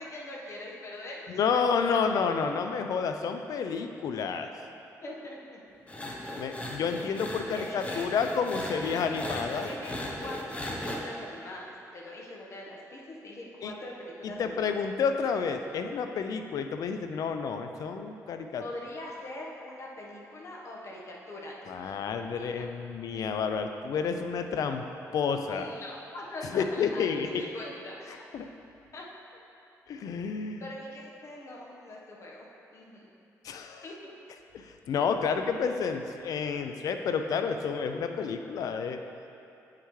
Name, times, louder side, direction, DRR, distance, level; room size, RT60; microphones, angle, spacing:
voice 1, 0.0-1.2 1.5-2.0 5.0-5.6 7.4-8.1 8.5-9.3 9.6-14.8 18.6-21.9 22.4-22.7 25.5-28.2 28.9-29.1 30.6-33.1 33.8-34.1, left 1 dB, 50° left, -2 dB, 1.2 m, -43 dB
voice 2, 1.3-4.5 6.4-9.7 13.6-13.7 14.2-18.6 21.7-24.8 25.1-25.7 26.5-27.4 28.3-28.5 29.9-30.6 33.4-33.8 34.5-39.0, left 6 dB, 70° left, 6 dB, 0.5 m, -30 dB
sound 1, 5.9-11.0, left 1 dB, 20° left, 0.9 m, -37 dB
8.6 x 5.7 x 3.2 m, 2.8 s
cardioid pair, 90°, 6 cm